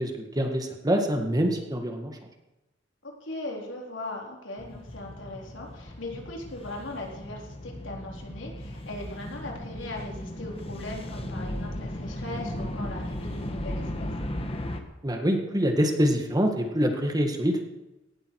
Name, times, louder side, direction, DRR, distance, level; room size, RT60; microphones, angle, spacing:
voice 1, 0.0-2.2 15.0-17.6, equal, 20° right, 3 dB, 2.0 m, -25 dB
voice 2, 3.0-14.1, left 2 dB, 80° left, -1 dB, 4.0 m, -39 dB
sound 1, 4.6-14.8, left 1 dB, 30° left, 1.6 m, -36 dB
18.0 x 13.5 x 4.8 m, 0.98 s
head